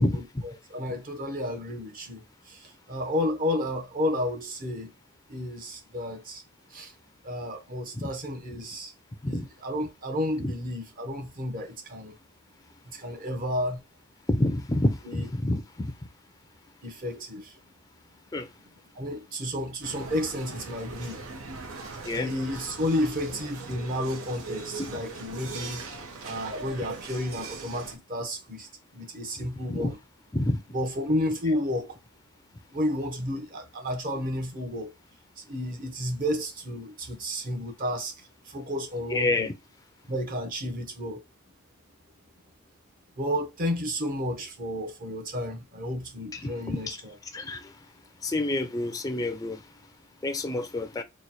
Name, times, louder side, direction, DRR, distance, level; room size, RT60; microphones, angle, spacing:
voice 1, 0.0-4.9 5.3-6.4 6.7-6.9 7.2-8.9 9.3-12.2 12.9-13.8 15.0-15.3 16.8-17.6 18.9-21.2 22.1-26.0 26.2-28.7 28.9-30.0 30.7-32.0 32.7-34.9 35.4-39.5 40.1-41.2 43.2-47.1, left 1 dB, 45° right, 0.9 m, -32 dB
voice 2, 14.3-15.9 18.3-18.5 22.1-22.3 24.8-24.9 29.7-29.9 30.3-30.6 39.1-39.5 46.3-47.0 47.3-47.7 48.2-49.6 50.2-51.0, left 1 dB, 15° left, 0.4 m, -28 dB
sound 1, 19.8-28.0, right 3 dB, 90° right, 0.8 m, -40 dB
3.0 x 2.2 x 4.0 m
head